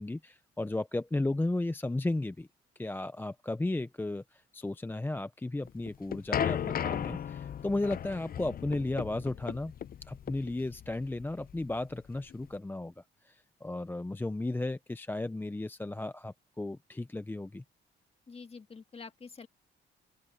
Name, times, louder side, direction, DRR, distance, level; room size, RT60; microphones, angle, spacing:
voice 1, 0.0-2.5 2.8-9.7 10.1-17.6, left 2 dB, 10° left, 0.6 m, -34 dB
sound 1, 5.7-12.5, left 9 dB, 45° left, 0.7 m, -36 dB
voice 2, 18.3-19.5, left 4 dB, 30° left, 2.1 m, -47 dB
open air
cardioid pair, 90°, 20 cm